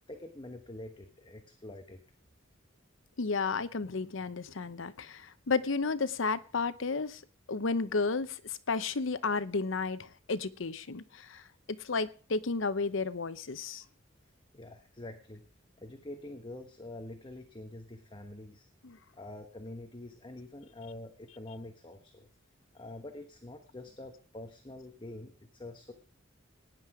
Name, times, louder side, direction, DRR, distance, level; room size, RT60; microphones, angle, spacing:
voice 1, 0.1-2.0 14.5-15.4 15.8-18.7 19.2-22.3 22.7-25.9, left 1 dB, 25° left, 6 dB, 1.2 m, -46 dB
voice 2, 3.2-7.2 7.5-11.4 11.7-13.8 18.8-19.0, left 4 dB, 75° left, 14 dB, 0.8 m, -32 dB
18.0 x 10.0 x 4.9 m, 0.40 s
head